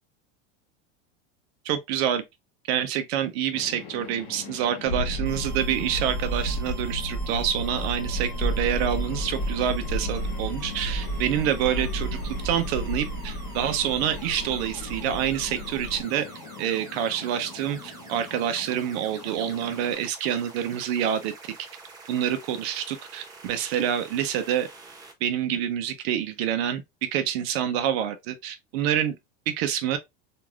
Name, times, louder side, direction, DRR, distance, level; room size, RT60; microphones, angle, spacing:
voice 1, 1.6-2.2 2.7-16.3 16.6-21.5 22.1-24.7 25.2-29.1 29.5-30.0, right 9 dB, 65° right, 0.7 m, -27 dB
sound 1, 3.5-19.9, left 7 dB, 45° left, 1.1 m, -43 dB
sound 2, 4.8-16.0, right 1 dB, 30° left, 1.3 m, -31 dB
sound 3, 5.3-25.1, right 3 dB, 10° right, 0.3 m, -46 dB
3.2 x 2.6 x 2.3 m
supercardioid pair, 150°, 34 cm